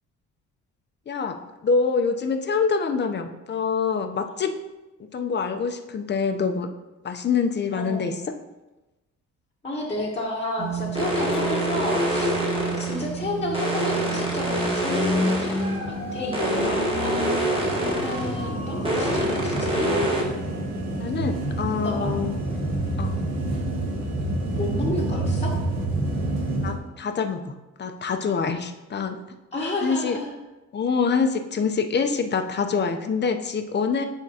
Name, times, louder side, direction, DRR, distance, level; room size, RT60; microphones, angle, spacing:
voice 1, 1.1-4.5 5.1-6.7 7.0-8.1 18.4-18.6 21.0-22.3 23.0-23.2 26.6-29.2 29.8-30.2 30.7-34.1, left 5 dB, 35° left, 7 dB, 0.6 m, -25 dB
voice 2, 7.7-8.1 9.6-12.3 12.8-17.3 18.0-19.9 21.8-22.1 24.6-25.5 29.5-30.4, left 1 dB, 20° left, -5 dB, 1.1 m, -31 dB
sound 1, 10.6-26.7, right 2 dB, 60° right, 1.8 m, -29 dB
sound 2, 11.0-13.1 13.5-15.8 16.3-18.4 18.8-20.2, equal, 20° right, 1.8 m, -26 dB
Dog, 15.5-20.6 21.2-21.3, right 2 dB, 90° right, 1.9 m, -40 dB
9.9 x 3.6 x 2.8 m, 1.1 s
cardioid pair, 90°, 30 cm